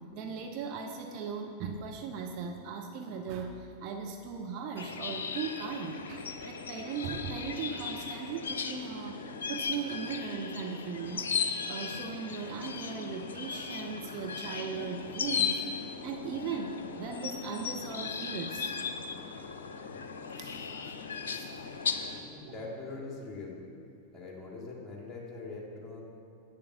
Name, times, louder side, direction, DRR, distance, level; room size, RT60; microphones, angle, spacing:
voice 1, 0.2-9.2 9.5-18.7 19.6-19.7 20.3-20.7 21.3-21.5 22.4-22.5, right 5 dB, 45° right, 4 dB, 0.7 m, -38 dB
sound 1, 4.8-22.2, left 6 dB, 65° left, 0.6 m, -37 dB
voice 2, 22.2-23.6 24.1-26.0, left 3 dB, 15° left, -3 dB, 2.5 m, -42 dB
9.1 x 7.0 x 6.7 m, 2.5 s
figure-of-eight pair, 90°, 0 cm